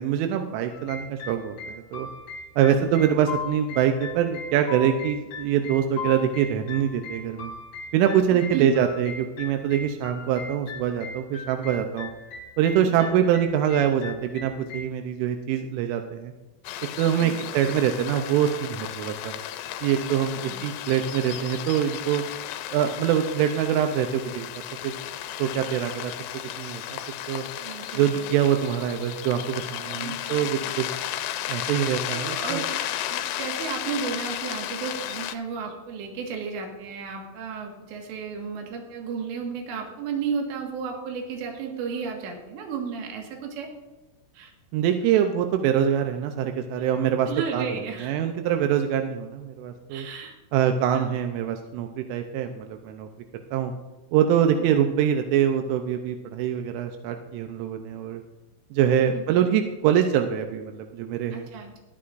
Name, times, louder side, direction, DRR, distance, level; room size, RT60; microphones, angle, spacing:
voice 1, 0.0-2.1 2.6-7.5 7.9-12.1 12.6-16.3 17.0-19.3 19.8-22.2 22.7-24.5 24.8-24.9 25.4-26.1 26.4-26.8 27.3-27.4 28.0-30.9 31.5-32.6 44.7-47.7 48.0-50.1 50.5-53.1 53.5-53.7 54.1-58.2 58.7-61.5, right 9 dB, 90° right, 6 dB, 3.2 m, -24 dB
sound 1, 0.7-14.8, left 4 dB, 60° left, 1.8 m, -39 dB
voice 2, 2.6-2.9 8.3-8.7 12.8-13.1 17.2-17.5 20.2-20.6 27.6-28.3 29.9-30.7 32.1-43.7 44.3-44.5 47.3-48.4 49.9-50.4 50.9-51.2 54.6-54.7 59.1-59.2 61.3-61.8, right 6 dB, 70° right, 2 dB, 3.8 m, -34 dB
sound 2, 16.6-35.3, left 12 dB, 80° left, 2.4 m, -34 dB
22.0 x 8.5 x 2.6 m, 1.2 s
omnidirectional pair, 5.5 m